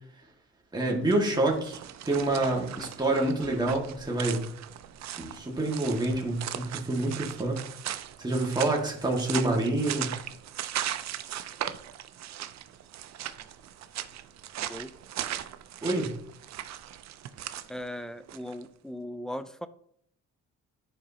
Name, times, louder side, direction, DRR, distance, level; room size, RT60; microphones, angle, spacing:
voice 1, 0.7-1.8 2.0-4.4 5.2-7.6 8.2-10.2 15.8-16.1, right 2 dB, 15° right, -1 dB, 1.8 m, -27 dB
sound 1, 1.0-18.6, right 11 dB, 65° right, 0.6 m, -38 dB
voice 2, 17.7-19.7, left 1 dB, ahead, 12 dB, 0.5 m, -38 dB
10.5 x 5.0 x 2.8 m, 0.67 s
cardioid pair, 90°, 30 cm